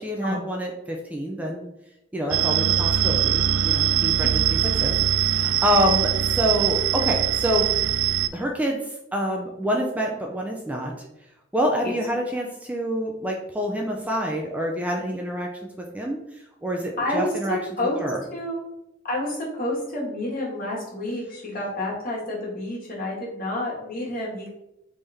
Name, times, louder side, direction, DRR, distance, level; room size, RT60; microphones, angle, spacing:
voice 1, 0.0-1.6 2.1-4.9 5.2-7.9 8.3-8.8 9.1-10.9 11.5-16.2 16.6-17.6 18.0-18.2, equal, 10° right, 0 dB, 0.4 m, -27 dB
sound 1, 2.3-8.3, right 10 dB, 90° right, 0.3 m, -22 dB
voice 2, 17.0-18.0 18.3-18.6 19.0-24.5, left 1 dB, 50° left, -4 dB, 1.6 m, -29 dB
4.0 x 3.5 x 3.4 m, 0.88 s
head